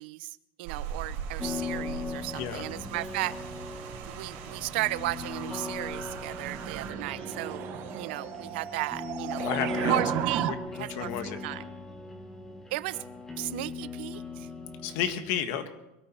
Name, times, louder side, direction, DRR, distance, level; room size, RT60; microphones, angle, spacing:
voice 1, 0.0-3.4 4.1-7.7 7.9-9.4 9.9-10.5 10.8-11.6 12.7-13.0 13.4-14.5, right 18 dB, 75° right, 18 dB, 0.6 m, -35 dB
Rain, 0.6-6.9, right 7 dB, 60° right, 4.6 m, -41 dB
sound 1, 1.4-15.1, left 3 dB, 10° left, 1.7 m, -39 dB
sound 2, 5.0-10.5, right 12 dB, 40° right, 1.0 m, -35 dB
voice 2, 9.4-10.0 10.5-11.4 14.8-15.7, left 9 dB, 55° left, 9 dB, 1.5 m, -32 dB
23.0 x 13.5 x 4.4 m, 0.90 s
cardioid pair, 165°, 6 cm